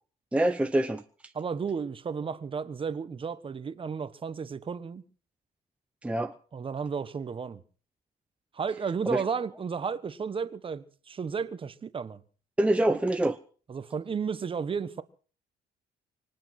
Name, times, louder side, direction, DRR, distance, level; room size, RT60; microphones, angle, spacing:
voice 1, 0.3-1.3 6.0-6.4 9.1-9.2 12.6-13.4, right 1 dB, 5° right, 0.7 m, -26 dB
voice 2, 1.3-5.0 6.5-7.6 8.5-12.2 12.9-13.0 13.7-15.0, right 6 dB, 30° right, 1.3 m, -33 dB
25.0 x 9.0 x 6.1 m
cardioid pair, 110°, 17 cm